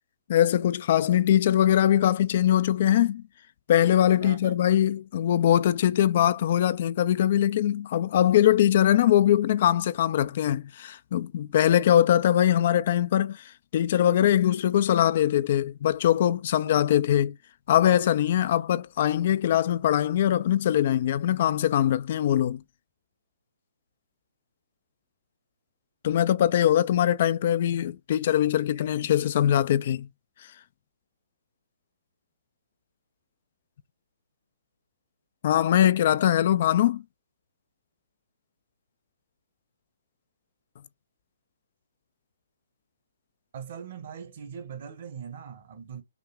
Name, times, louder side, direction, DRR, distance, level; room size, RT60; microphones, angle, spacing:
voice 1, 0.3-3.2 3.7-13.4 13.7-17.4 17.7-22.6 26.0-30.1 35.4-37.0, left 11 dB, 50° left, 0.3 m, -22 dB
voice 2, 4.2-4.5 10.2-10.3 16.7-16.9 43.5-46.0, right 7 dB, 55° right, 1.3 m, -41 dB
5.8 x 2.1 x 3.5 m
hypercardioid pair, 135°, 0 cm